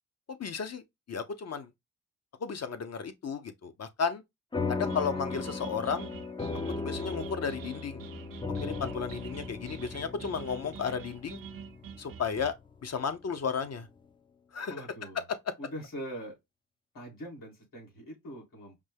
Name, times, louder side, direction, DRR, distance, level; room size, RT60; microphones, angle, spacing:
voice 1, 0.3-0.8 1.1-1.7 2.4-4.2 4.7-6.1 6.8-8.0 8.6-11.4 12.0-12.5 12.8-13.9 14.5-14.8, left 6 dB, 50° left, 0.8 m, -33 dB
sound 1, 4.5-13.3, left 4 dB, 15° left, 0.5 m, -37 dB
sound 2, 4.9-12.5, right 8 dB, 85° right, 0.6 m, -46 dB
voice 2, 14.7-15.2 15.6-16.4 16.9-18.8, equal, 80° left, 2.5 m, -42 dB
5.1 x 2.1 x 3.4 m
cardioid pair, 60°, 33 cm